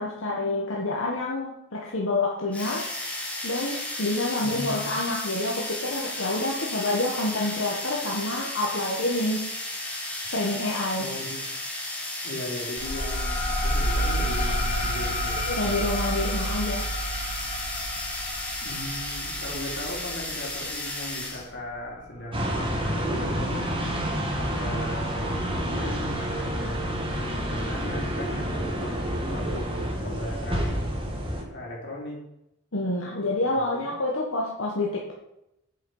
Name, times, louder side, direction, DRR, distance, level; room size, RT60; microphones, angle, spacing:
voice 1, 0.0-2.9 3.4-9.5 10.3-11.0 15.5-16.8 32.7-35.1, left 2 dB, 85° left, -3 dB, 1.5 m, -28 dB
sound 1, 2.5-21.5, left 1 dB, 5° left, 1.9 m, -34 dB
voice 2, 4.4-5.0 11.0-11.4 12.2-15.8 18.6-23.7 24.3-31.2 31.5-32.2 33.5-33.9, left 1 dB, 60° left, -3 dB, 3.5 m, -38 dB
sound 2, 12.8-22.0, equal, 40° left, 2.2 m, -30 dB
sound 3, 22.3-31.4, equal, 25° right, 1.7 m, -29 dB
8.1 x 7.4 x 5.6 m, 0.84 s
head